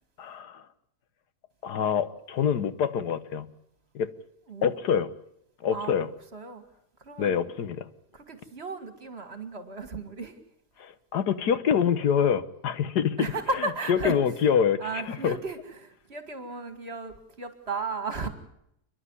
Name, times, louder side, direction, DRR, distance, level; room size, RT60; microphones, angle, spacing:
voice 1, 0.2-0.6 1.6-3.5 3.9-4.1 4.6-5.1 5.6-6.1 7.2-7.9 10.8-13.3 13.9-15.4, left 7 dB, 85° left, 13 dB, 1.7 m, -25 dB
voice 2, 4.5-4.8 5.7-6.6 7.0-7.4 8.1-10.4 13.2-14.2 14.8-18.3, right 3 dB, 40° right, 9 dB, 2.2 m, -35 dB
29.5 x 11.0 x 9.8 m, 0.78 s
omnidirectional pair, 1.7 m